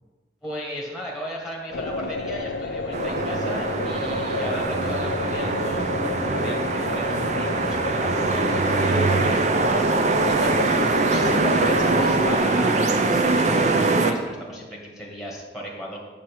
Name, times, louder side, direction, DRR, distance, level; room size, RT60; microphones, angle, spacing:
voice 1, 0.4-16.0, equal, ahead, -2 dB, 1.4 m, -35 dB
sound 1, 1.7-12.4, left 3 dB, 80° left, 0.5 m, -30 dB
sound 2, 2.9-14.1, right 3 dB, 40° right, 0.5 m, -22 dB
7.4 x 6.3 x 4.7 m, 1.4 s
head